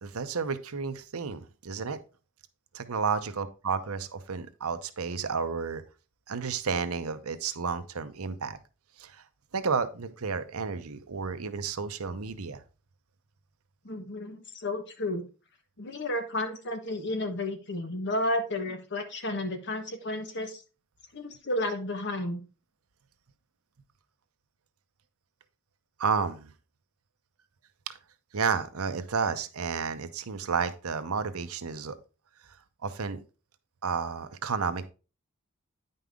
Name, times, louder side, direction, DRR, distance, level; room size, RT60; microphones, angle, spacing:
voice 1, 0.0-2.0 2.7-5.8 6.3-8.6 9.0-9.2 9.5-12.6 26.0-26.5 27.9-28.0 28.3-32.0 32.8-33.2 33.8-34.9, right 5 dB, 75° right, 0.8 m, -31 dB
voice 2, 13.8-15.3 15.8-20.6 21.1-22.4, left 1 dB, 50° left, 1.3 m, -32 dB
9.5 x 5.4 x 3.7 m
head